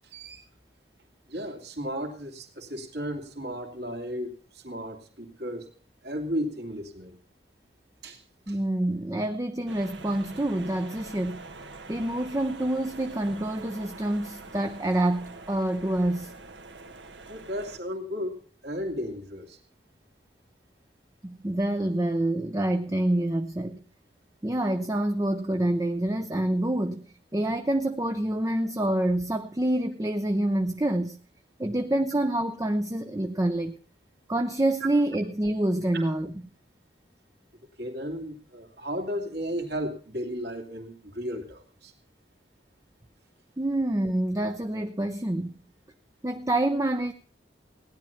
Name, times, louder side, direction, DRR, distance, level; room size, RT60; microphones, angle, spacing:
voice 1, 0.0-0.4 1.3-5.7 6.0-7.1 8.0-8.2 8.5-8.6 17.3-19.6 35.9-36.1 37.8-41.9, equal, 60° right, 2.6 m, -34 dB
voice 2, 8.5-11.5 11.9-16.3 21.2-23.8 24.4-27.0 27.3-31.2 31.6-33.8 34.3-36.3 43.6-45.5 46.2-47.1, right 1 dB, 20° right, 0.6 m, -27 dB
sound 1, 9.7-17.8, right 3 dB, 80° right, 1.7 m, -45 dB
16.5 x 10.5 x 5.7 m
head